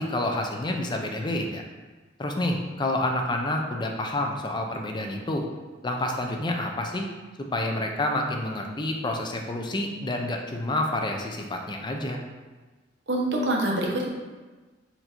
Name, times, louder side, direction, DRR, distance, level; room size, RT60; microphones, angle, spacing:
voice 1, 0.0-1.6 2.2-5.5 5.8-7.1 7.4-12.2, left 1 dB, 25° left, 3 dB, 0.5 m, -28 dB
voice 2, 13.1-14.1, right 1 dB, 85° right, -1 dB, 0.9 m, -25 dB
4.3 x 2.6 x 4.3 m, 1.3 s
head